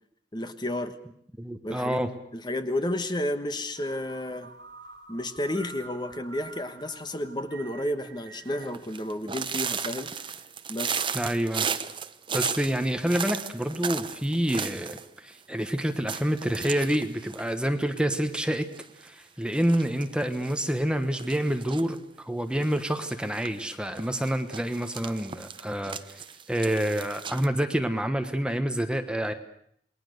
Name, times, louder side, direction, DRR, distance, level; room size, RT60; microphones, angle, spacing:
voice 1, 0.3-0.9 1.6-2.1 2.3-4.5 5.1-10.3 10.7-11.1, left 1 dB, 25° left, 9 dB, 1.3 m, -32 dB
voice 2, 1.4-2.1 11.1-11.7 12.3-18.7 19.0-26.2 26.5-29.3, right 1 dB, 5° right, 7 dB, 1.2 m, -28 dB
sound 1, 3.8-8.8, right 4 dB, 85° right, 2.9 m, -48 dB
sound 2, 8.6-15.1 15.3-15.4 15.7-15.8 16.1-18.1 18.5-19.1 19.5-20.5 21.1-22.0 22.5-23.5 24.0-27.5, right 6 dB, 30° right, 0.9 m, -35 dB
28.0 x 20.5 x 6.7 m, 0.68 s
head